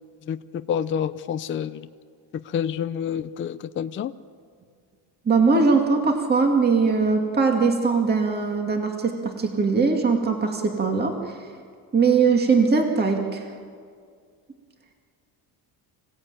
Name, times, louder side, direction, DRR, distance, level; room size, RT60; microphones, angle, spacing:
voice 1, 0.3-1.9 2.3-4.1, left 8 dB, 30° left, 11 dB, 0.5 m, -28 dB
voice 2, 5.3-11.1 11.9-13.4, right 4 dB, 25° right, 3 dB, 2.2 m, -21 dB
27.0 x 16.5 x 8.9 m, 2.1 s
cardioid pair, 150°, 42 cm